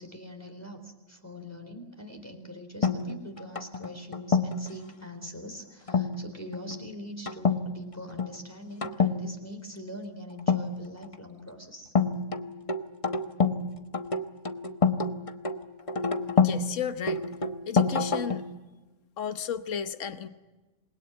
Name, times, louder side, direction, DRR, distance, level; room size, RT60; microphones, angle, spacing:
voice 1, 0.0-11.9, equal, 10° left, 3 dB, 4.0 m, -43 dB
sound 1, 2.8-4.7 5.9-6.2 6.5-6.8 7.3-7.6 7.9-8.3 8.8-9.2 10.4-11.1 12.0-13.6 13.9-16.6 17.1-18.5, left 5 dB, 25° left, 1.1 m, -27 dB
voice 2, 16.4-17.3 17.7-18.4 19.2-20.3, left 8 dB, 75° left, 10 dB, 1.5 m, -33 dB
27.5 x 21.5 x 9.8 m, 1.2 s
omnidirectional pair, 1.3 m